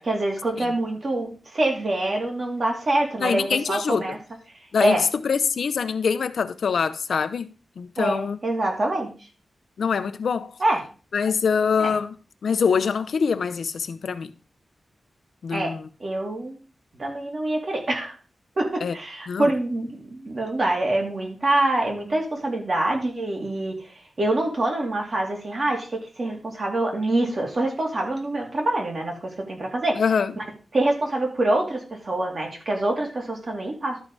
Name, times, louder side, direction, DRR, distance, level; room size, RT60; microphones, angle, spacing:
voice 1, 0.0-4.2 4.8-5.0 8.0-9.1 10.6-10.8 11.8-11.9 15.5-15.7 16.0-16.6 17.0-18.1 18.6-23.9 24.2-30.0 30.4-30.5 30.7-34.0, right 1 dB, 40° right, 2.5 m, -25 dB
voice 2, 3.2-4.0 4.7-7.5 7.8-8.4 9.8-10.5 11.1-12.1 12.4-14.3 15.4-15.8 18.8-18.9 19.3-19.5 30.0-30.3, left 6 dB, 75° left, 0.7 m, -24 dB
12.0 x 4.7 x 5.3 m
wide cardioid pair, 170°, 0 cm